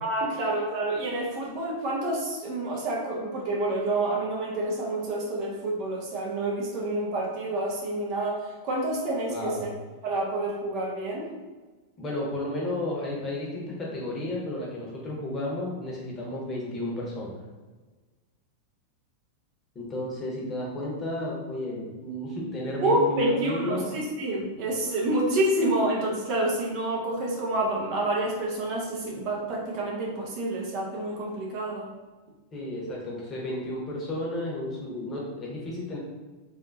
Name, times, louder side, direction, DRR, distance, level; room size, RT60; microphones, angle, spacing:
voice 1, 0.0-9.7 10.0-11.3 22.8-31.9, right 1 dB, 40° right, -3 dB, 0.8 m, -28 dB
voice 2, 9.3-9.7 12.0-17.4 19.7-23.9 25.3-25.4 32.5-36.0, left 1 dB, 25° left, -3 dB, 1.0 m, -33 dB
3.4 x 2.6 x 2.6 m, 1.3 s
figure-of-eight pair, 90°, 0 cm